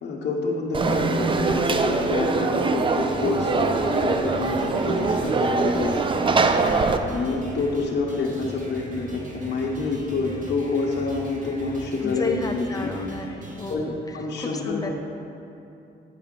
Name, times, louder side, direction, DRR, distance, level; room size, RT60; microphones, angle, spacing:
voice 1, 0.0-6.2 7.1-12.9 13.7-14.9, left 3 dB, 55° left, -3 dB, 0.9 m, -27 dB
Conversation / Crowd, 0.7-7.0, right 4 dB, 25° right, 0.4 m, -23 dB
sound 1, 3.1-13.7, right 1 dB, 40° right, 1.1 m, -40 dB
voice 2, 6.5-7.0 12.0-14.0 14.4-14.9, left 3 dB, 20° left, 3 dB, 0.7 m, -32 dB
9.1 x 5.6 x 3.8 m, 2.7 s
cardioid pair, 90°, 20 cm